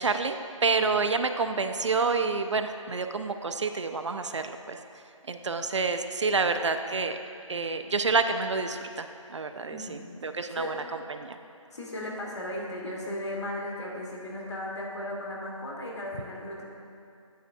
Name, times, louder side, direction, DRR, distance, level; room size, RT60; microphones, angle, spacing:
voice 1, 0.0-4.8 5.3-7.2 7.5-11.4, right 4 dB, 60° right, 7 dB, 0.4 m, -28 dB
voice 2, 10.2-10.7 11.7-16.7, left 1 dB, 55° left, -2 dB, 1.6 m, -36 dB
9.0 x 7.8 x 2.6 m, 2.5 s
figure-of-eight pair, 170°, 17 cm